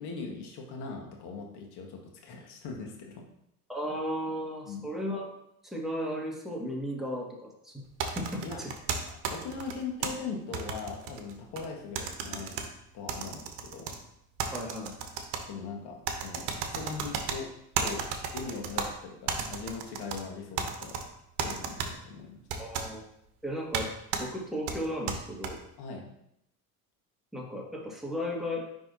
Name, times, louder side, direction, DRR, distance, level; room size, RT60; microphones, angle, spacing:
voice 1, 0.0-3.2 4.7-4.9 8.4-8.6 9.3-12.6 12.9-13.9 15.5-18.1 18.3-21.0 21.4-22.7 25.8-26.1, left 5 dB, 55° left, 1 dB, 1.6 m, -40 dB
voice 2, 3.7-5.3 5.6-7.8 8.2-8.7 14.5-14.9 22.6-23.0 23.4-23.9 24.2-25.6 27.3-28.6, equal, ahead, -2 dB, 1.6 m, -35 dB
sound 1, 8.0-10.1 10.5-11.7 12.0-12.7 13.1-14.0 14.4-15.4 16.1-17.4 17.8-18.9 19.3-20.2 20.6-21.0 21.4-21.9 22.5-22.9 23.7-23.8 24.1-24.2 24.7-25.5, right 6 dB, 65° right, 1.0 m, -33 dB
9.8 x 3.5 x 2.8 m, 0.77 s
hypercardioid pair, 65°, 45 cm